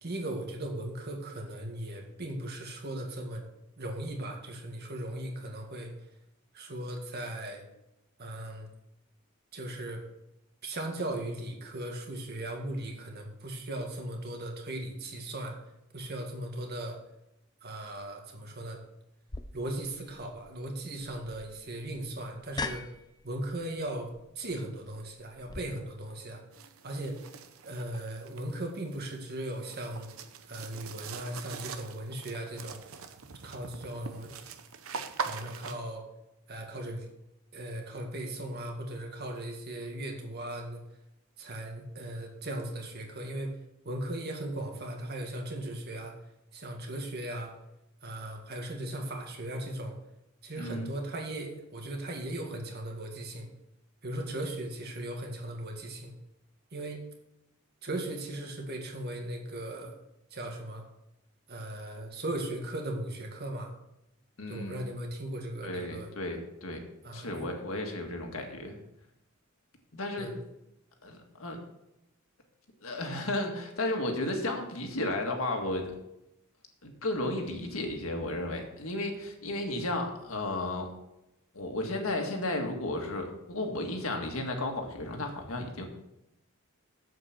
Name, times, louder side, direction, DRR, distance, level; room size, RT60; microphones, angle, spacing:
voice 1, 0.0-3.4 3.8-5.9 6.5-7.6 8.2-8.7 9.5-10.0 10.6-15.6 15.9-17.0 17.6-18.8 19.5-22.8 23.2-26.4 26.8-27.2 27.6-30.1 30.5-32.8 33.4-34.3 35.2-36.1 36.5-37.1 37.5-40.8 41.4-46.1 46.5-47.5 48.0-50.0 50.4-53.5 54.0-56.1 56.7-57.0 57.8-59.9 60.3-60.8 61.5-63.7 64.5-66.1 67.0-67.5 70.2-70.4, right 1 dB, 45° right, 2 dB, 1.9 m, -37 dB
sound 1, 19.3-25.6, left 3 dB, 20° left, 0.5 m, -43 dB
sound 2, 26.5-35.8, right 5 dB, 70° right, 0.8 m, -42 dB
voice 2, 50.6-50.9 64.4-64.8 65.6-66.8 67.1-68.8 69.9-70.3 71.0-71.6 72.8-76.0 76.8-80.9 81.5-85.9, left 2 dB, 65° left, 3 dB, 1.8 m, -33 dB
7.9 x 7.7 x 6.0 m, 0.87 s
head